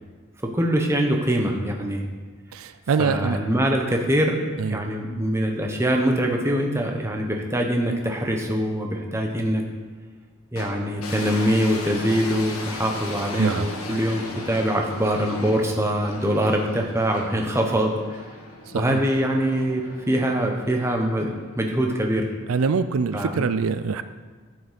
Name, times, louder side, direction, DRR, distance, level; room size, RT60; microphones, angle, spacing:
voice 1, 0.4-2.0 3.0-4.4 4.7-9.6 10.5-17.9 18.7-22.3 23.1-23.5, equal, 10° right, 2 dB, 1.0 m, -23 dB
voice 2, 2.5-3.4 4.6-4.9 13.4-13.7 18.7-19.0 22.5-24.0, right 5 dB, 80° right, 12 dB, 0.4 m, -24 dB
sound 1, 10.6-21.8, left 2 dB, 85° left, 1.7 m, -38 dB
11.5 x 7.9 x 5.1 m, 1.4 s
head